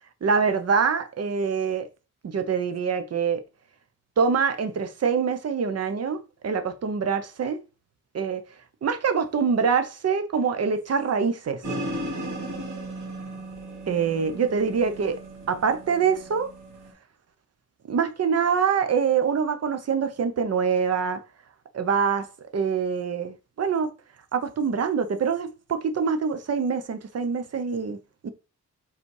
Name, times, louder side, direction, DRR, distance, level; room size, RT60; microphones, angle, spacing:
voice 1, 0.2-1.9 2.2-3.4 4.2-6.2 6.4-7.6 8.1-8.4 8.8-11.6 13.9-15.2 15.5-16.5 17.9-21.2 21.7-22.2 22.5-23.9 24.3-28.0 28.2-28.3, right 6 dB, 55° right, 0.9 m, -25 dB
sound 1, 11.6-16.9, right 1 dB, 75° right, 2.8 m, -36 dB
5.4 x 4.1 x 4.8 m
wide cardioid pair, 140°, 30 cm